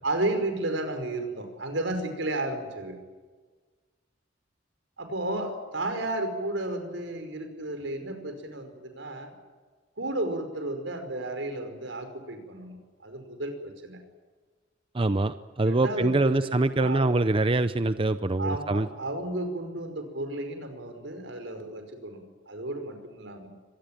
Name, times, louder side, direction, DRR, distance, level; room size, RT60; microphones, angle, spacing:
voice 1, 0.0-3.0 5.0-9.3 10.0-12.8 13.0-14.0 15.6-17.1 18.4-23.5, right 2 dB, 75° right, 6 dB, 5.3 m, -33 dB
voice 2, 14.9-18.9, right 2 dB, 30° right, 12 dB, 0.6 m, -24 dB
24.5 x 19.0 x 9.2 m, 1.4 s
head